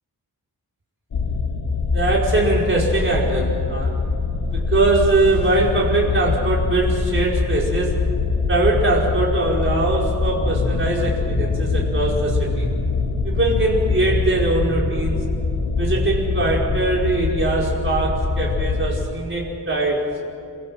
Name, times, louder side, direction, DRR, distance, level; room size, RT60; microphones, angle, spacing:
sound 1, 1.1-19.1, left 4 dB, 85° left, 2.2 m, -23 dB
voice 1, 1.9-3.9 4.5-8.0 8.5-12.7 13.2-15.2 15.8-20.1, right 2 dB, 30° right, -3 dB, 5.1 m, -21 dB
28.5 x 16.0 x 7.6 m, 2.5 s
wide cardioid pair, 160°, 38 cm